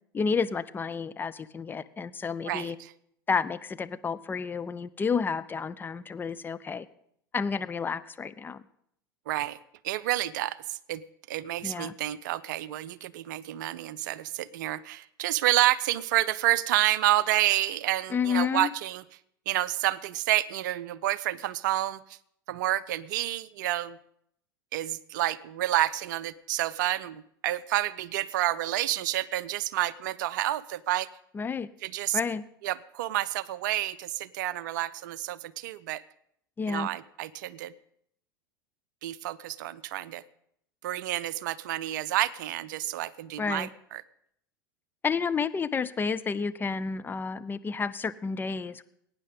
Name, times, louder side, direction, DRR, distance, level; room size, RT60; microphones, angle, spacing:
voice 1, 0.1-2.8 3.3-6.9 7.3-8.6 11.6-11.9 18.1-18.7 31.3-31.7 32.1-32.4 36.6-36.9 43.4-43.7 45.0-48.8, left 5 dB, 15° left, 12 dB, 0.4 m, -30 dB
voice 2, 2.5-2.9 9.3-9.6 9.8-11.0 11.3-19.0 19.5-22.0 22.5-24.0 24.7-31.1 31.8-32.2 32.6-36.0 36.7-37.7 39.0-40.2 40.8-44.0, right 15 dB, 60° right, 19 dB, 0.5 m, -29 dB
21.5 x 9.6 x 3.7 m, 0.71 s
figure-of-eight pair, 80°, 12 cm